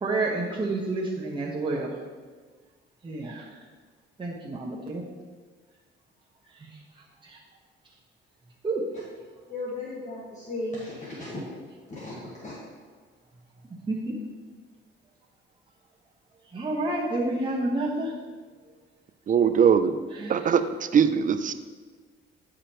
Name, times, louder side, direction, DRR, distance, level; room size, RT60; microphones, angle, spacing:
voice 1, 0.0-1.9 3.0-3.4 4.2-5.0 8.6-8.8 13.9-14.1 16.5-18.1 20.2-20.3, right 2 dB, 25° right, -4 dB, 1.1 m, -29 dB
voice 2, 9.5-11.4 11.9-12.5, left 2 dB, 35° left, -6 dB, 1.5 m, -35 dB
voice 3, 19.3-20.0 20.3-20.6 20.9-21.5, right 7 dB, 40° right, 11 dB, 0.4 m, -20 dB
9.8 x 5.0 x 3.0 m, 1.5 s
cardioid pair, 90°, 20 cm